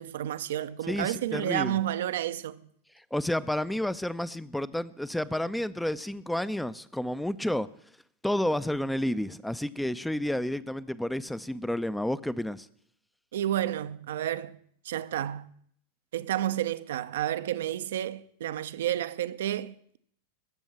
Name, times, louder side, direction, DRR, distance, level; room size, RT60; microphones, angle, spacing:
voice 1, 0.0-2.6 13.3-14.6 14.8-15.5 16.1-20.0, right 12 dB, 60° right, 0.6 m, -31 dB
voice 2, 0.9-1.8 3.1-7.7 8.2-12.7, left 1 dB, 5° left, 0.5 m, -30 dB
21.0 x 7.1 x 5.8 m
figure-of-eight pair, 90°, 0 cm